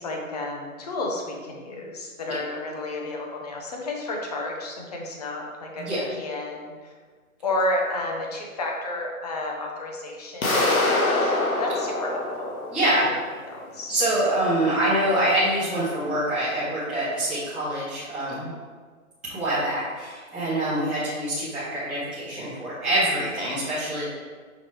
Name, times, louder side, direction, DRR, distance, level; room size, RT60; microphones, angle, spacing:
voice 1, 0.0-6.9 7.4-12.6 13.4-14.0, left 2 dB, 30° left, 0 dB, 0.6 m, -31 dB
sound 1, 10.4-13.3, left 2 dB, 75° left, 1.2 m, -24 dB
voice 2, 12.7-13.1 13.9-18.5 19.2-24.1, right 1 dB, ahead, -13 dB, 0.8 m, -25 dB
5.6 x 3.0 x 3.1 m, 1.5 s
hypercardioid pair, 145°, 43 cm